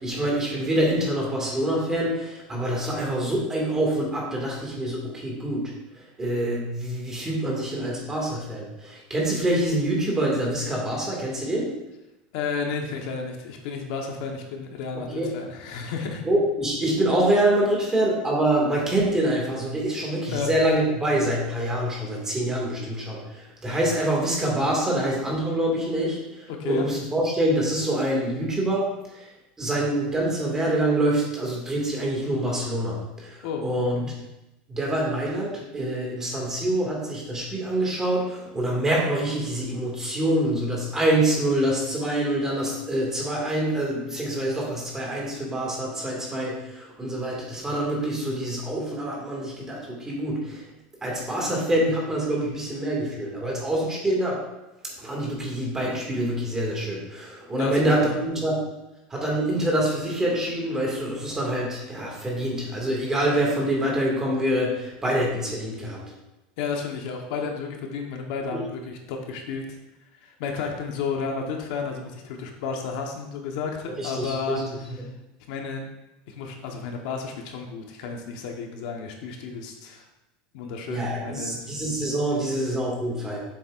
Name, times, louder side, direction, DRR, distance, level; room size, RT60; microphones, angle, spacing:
voice 1, 0.0-11.7 15.1-15.3 16.2-29.3 29.6-34.1 34.7-50.6 51.0-54.4 54.8-58.6 59.1-66.0 68.5-68.6 74.0-74.6 80.9-83.4, right 1 dB, 15° right, -3 dB, 2.3 m, -26 dB
voice 2, 12.3-16.2 20.3-20.5 26.5-26.9 33.4-34.1 57.6-58.1 66.6-69.6 70.2-74.6 75.5-75.9 76.3-80.0 80.5-81.6, left 5 dB, 70° left, 2 dB, 1.3 m, -32 dB
9.0 x 7.5 x 2.6 m, 0.96 s
supercardioid pair, 150°, 4 cm